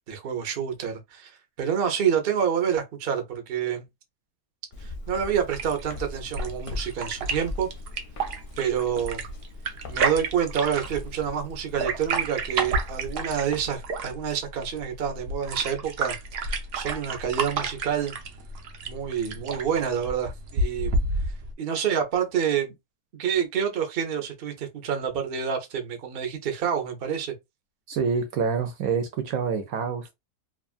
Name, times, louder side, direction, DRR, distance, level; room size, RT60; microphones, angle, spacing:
voice 1, 0.1-1.3 1.6-3.8 4.8-7.7 8.6-9.2 9.9-18.2 18.8-20.9 21.6-22.7 23.1-27.3, right 8 dB, 55° right, 0.7 m, -28 dB
Walk footsteps, 4.7-13.8, left 2 dB, 55° left, 0.6 m, -41 dB
sound 1, 5.5-21.5, right 3 dB, 90° right, 0.5 m, -31 dB
voice 2, 27.9-30.1, right 6 dB, 70° right, 0.9 m, -27 dB
3.0 x 2.3 x 2.4 m
omnidirectional pair, 1.7 m